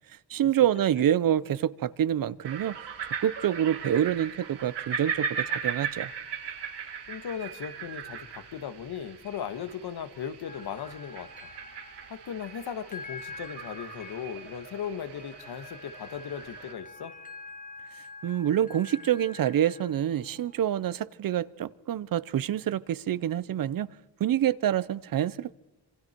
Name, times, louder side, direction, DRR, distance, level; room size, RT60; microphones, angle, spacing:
voice 1, 0.3-2.8 3.2-6.1 18.2-23.9 24.2-25.5, right 10 dB, 60° right, 19 dB, 0.7 m, -27 dB
sound 1, 2.4-16.7, right 7 dB, 90° right, 4.4 m, -38 dB
voice 2, 7.1-11.5 12.1-17.1, left 8 dB, 70° left, 10 dB, 1.7 m, -37 dB
sound 2, 10.5-20.7, left 3 dB, 20° left, 2.0 m, -47 dB
27.0 x 26.5 x 4.6 m, 1.1 s
wide cardioid pair, 170°, 40 cm